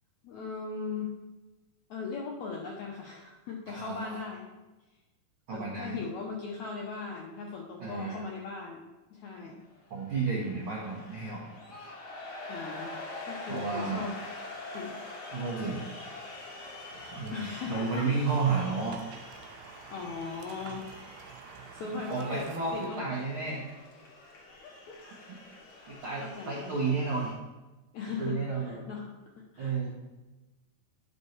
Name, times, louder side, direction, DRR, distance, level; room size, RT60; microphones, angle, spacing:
voice 1, 0.2-1.1 1.9-4.5 5.5-8.8 9.1-9.6 12.5-14.2 14.7-15.1 17.3-18.1 19.9-20.9 21.5-22.5 22.7-23.2 24.6-25.0 25.9-26.9 27.9-29.1 29.5-29.7, left 5 dB, 80° left, -1 dB, 1.7 m, -39 dB
voice 2, 3.7-4.2 5.5-6.0 7.8-8.2 9.9-11.5 13.5-14.1 15.3-15.8 17.1-19.0 21.8-23.6 25.9-27.3 28.2-28.8 29.6-29.9, right 4 dB, 70° right, -5 dB, 1.2 m, -32 dB
sound 1, 9.7-27.3, left 2 dB, 55° left, 1.1 m, -45 dB
sound 2, 15.8-22.9, right 8 dB, 90° right, 1.7 m, -50 dB
10.0 x 5.4 x 3.1 m, 1.1 s
omnidirectional pair, 4.2 m